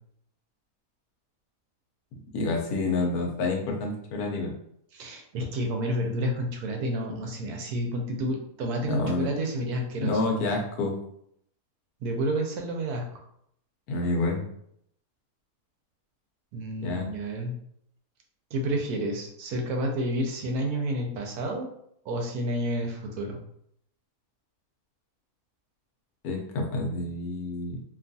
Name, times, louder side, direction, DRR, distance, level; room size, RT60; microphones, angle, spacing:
voice 1, 2.3-4.5 8.9-9.3 10.0-10.9 13.9-14.4 16.8-17.1 26.2-27.8, left 2 dB, 80° left, 1 dB, 1.1 m, -28 dB
voice 2, 4.9-10.2 12.0-13.2 16.5-17.6 18.5-21.7 22.1-23.4, right 1 dB, 80° right, 2 dB, 1.1 m, -30 dB
2.9 x 2.3 x 2.6 m, 0.71 s
omnidirectional pair, 1.6 m